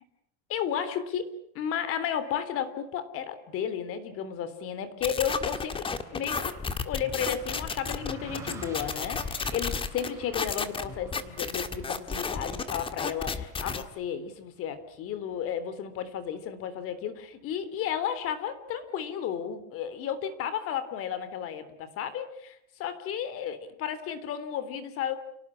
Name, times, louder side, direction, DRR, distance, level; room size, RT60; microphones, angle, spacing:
voice 1, 0.5-25.1, left 8 dB, 40° left, 13 dB, 3.5 m, -33 dB
sound 1, 5.0-13.8, left 5 dB, 15° left, 1.7 m, -32 dB
Car passing by, 6.0-15.6, right 2 dB, 10° right, 7.7 m, -49 dB
29.5 x 18.5 x 10.0 m, 0.72 s
cardioid pair, 160°, 34 cm